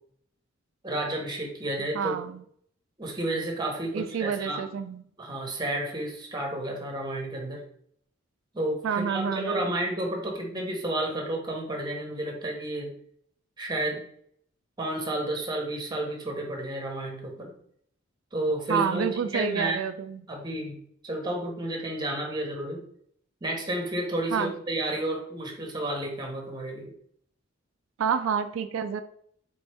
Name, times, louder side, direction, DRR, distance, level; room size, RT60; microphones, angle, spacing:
voice 1, 0.8-2.2 3.0-4.6 5.2-7.6 8.5-12.9 13.6-14.0 14.8-17.5 18.3-19.8 20.3-20.8 21.0-22.8 23.4-26.9, right 1 dB, 20° right, 1 dB, 1.0 m, -31 dB
voice 2, 1.9-2.4 3.9-5.0 8.8-9.7 18.7-20.2 24.3-24.5 28.0-29.0, right 7 dB, 90° right, 9 dB, 0.3 m, -28 dB
4.3 x 3.5 x 3.4 m, 0.64 s
head